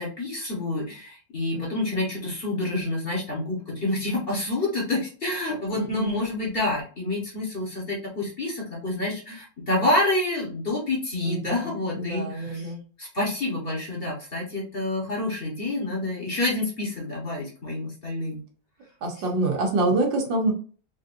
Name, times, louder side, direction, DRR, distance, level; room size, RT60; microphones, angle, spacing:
voice 1, 0.0-12.7 13.0-18.4 19.2-19.3, left 2 dB, 35° left, -4 dB, 1.3 m, -28 dB
voice 2, 5.7-6.3 11.2-12.8 19.0-20.5, right 2 dB, 85° right, 1 dB, 1.8 m, -26 dB
4.5 x 2.7 x 2.5 m, 0.39 s
omnidirectional pair, 1.9 m